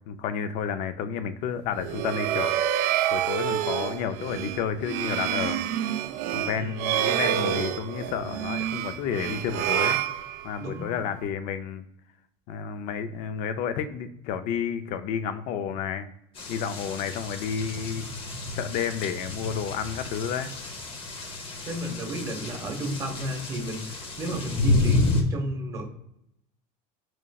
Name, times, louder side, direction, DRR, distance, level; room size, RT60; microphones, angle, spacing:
voice 1, 0.1-2.5 3.1-5.6 6.3-10.0 10.4-11.8 12.5-16.1 16.5-18.0 18.5-20.5, left 7 dB, 55° left, 10 dB, 0.4 m, -31 dB
sound 1, 1.8-10.8, right 11 dB, 60° right, 0.4 m, -28 dB
voice 2, 6.5-7.2 10.6-10.9 21.6-25.8, right 1 dB, 20° right, 0 dB, 1.1 m, -33 dB
sound 2, 16.4-25.2, left 2 dB, 35° left, 0.7 m, -30 dB
5.0 x 3.0 x 2.3 m, 0.77 s
cardioid pair, 145°, 16 cm